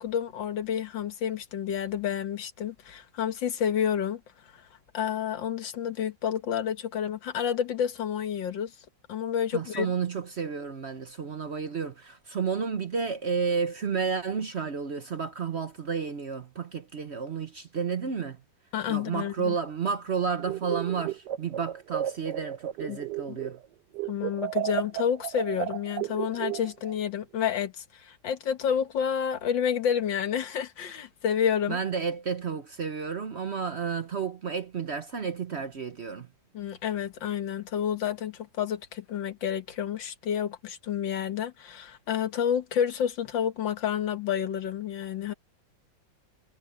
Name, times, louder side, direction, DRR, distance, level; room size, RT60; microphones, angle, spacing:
voice 1, 0.0-4.2 4.9-8.7 9.1-9.9 18.7-19.6 22.9-23.0 23.3-23.4 24.1-31.8 36.5-45.3, left 8 dB, 85° left, 2.2 m, -29 dB
voice 2, 9.5-18.4 18.9-23.6 31.7-36.3, right 6 dB, 45° right, 0.9 m, -31 dB
sound 1, 20.4-23.7 23.9-27.0, right 14 dB, 70° right, 1.2 m, -33 dB
omnidirectional pair, 2.0 m